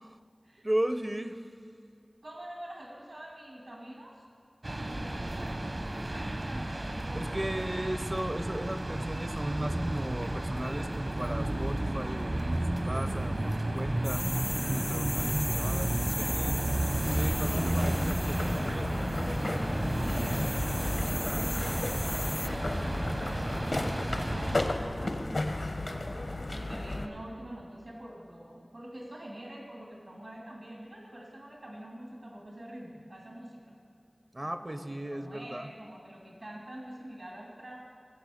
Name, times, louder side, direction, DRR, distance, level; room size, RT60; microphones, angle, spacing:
voice 1, 0.6-1.4 7.1-14.2 14.7-19.2 25.9-26.4 34.3-35.7, right 1 dB, 30° right, 9 dB, 0.5 m, -36 dB
voice 2, 2.2-4.2 4.7-7.9 19.9-25.2 26.5-33.7 34.4-37.9, right 1 dB, 80° right, -2 dB, 2.1 m, -46 dB
sound 1, 4.6-24.6, right 1 dB, 50° right, 0.8 m, -32 dB
sound 2, 14.0-22.5, left 1 dB, 45° left, 0.3 m, -38 dB
sound 3, 17.1-27.1, left 2 dB, 75° left, 0.8 m, -34 dB
17.5 x 6.8 x 4.9 m, 2.6 s
wide cardioid pair, 55°, 0 cm